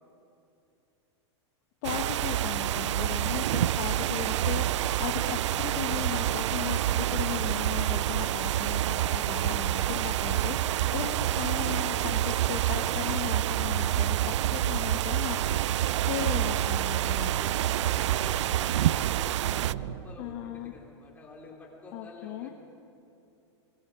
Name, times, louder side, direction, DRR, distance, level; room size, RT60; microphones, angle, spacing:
voice 1, 1.8-17.3 19.8-19.9 20.2-20.7 21.9-22.5, left 11 dB, 40° left, 4 dB, 1.1 m, -37 dB
sound 1, 1.8-19.7, right 12 dB, 80° right, 0.4 m, -27 dB
sound 2, 13.4-20.1, right 9 dB, 55° right, 1.1 m, -49 dB
voice 2, 17.2-22.6, left 3 dB, 10° left, -2 dB, 3.7 m, -48 dB
26.5 x 22.0 x 5.0 m, 2.6 s
supercardioid pair, 165°, 15 cm